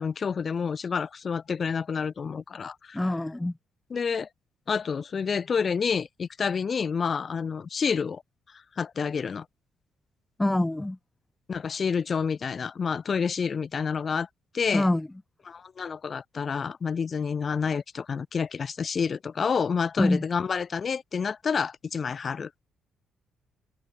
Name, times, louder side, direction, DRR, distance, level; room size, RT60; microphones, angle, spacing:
voice 1, 0.0-3.0 3.9-4.3 4.7-8.2 8.8-9.4 11.5-14.3 14.5-14.9 15.4-22.5, left 6 dB, 45° left, 1.6 m, -29 dB
voice 2, 2.9-3.5 10.4-11.0 14.7-15.1 20.0-20.2, left 1 dB, 10° left, 1.1 m, -25 dB
cardioid pair, 90°, 0 cm